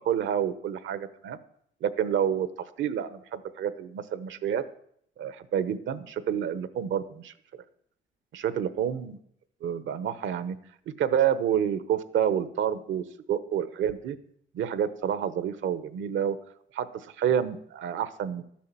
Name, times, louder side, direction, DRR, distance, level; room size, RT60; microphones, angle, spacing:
voice 1, 0.0-1.4 1.8-2.5 2.8-4.6 5.2-7.3 8.3-9.2 9.6-10.6 10.9-14.2 14.5-16.4 16.7-18.4, right 9 dB, 70° right, 14 dB, 1.0 m, -28 dB
12.5 x 7.5 x 7.5 m, 0.69 s
cardioid pair, 90°, 20 cm